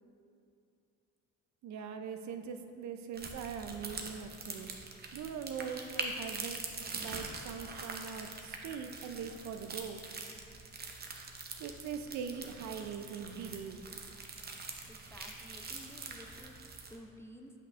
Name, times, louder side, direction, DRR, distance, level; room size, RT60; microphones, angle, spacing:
voice 1, 1.6-4.7 5.1-10.0 11.6-13.9, right 6 dB, 70° right, 7 dB, 0.5 m, -42 dB
sound 1, 3.1-17.0, right 3 dB, 30° right, 0.7 m, -44 dB
voice 2, 14.9-17.5, equal, 10° left, 3 dB, 0.4 m, -53 dB
8.1 x 5.5 x 2.4 m, 2.6 s
cardioid pair, 90°, 30 cm